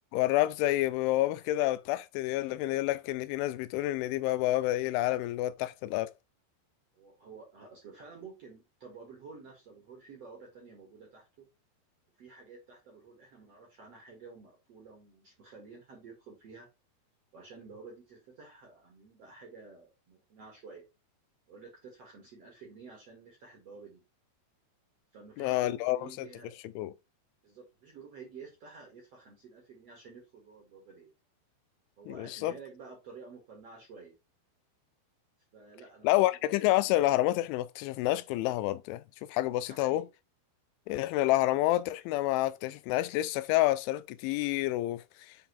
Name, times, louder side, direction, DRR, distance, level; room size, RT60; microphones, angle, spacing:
voice 1, 0.1-6.1 25.4-26.3 26.8-26.9 32.1-32.5 36.0-39.0 39.3-40.1 40.9-45.4, left 16 dB, 85° left, 2.9 m, -28 dB
voice 2, 6.9-11.4 12.2-16.7 17.3-20.8 21.5-24.0 25.1-26.6 27.4-31.1 32.0-34.2 35.5-36.6 39.7-40.1, right 4 dB, 50° right, 2.0 m, -51 dB
7.7 x 3.8 x 4.1 m
omnidirectional pair, 5.5 m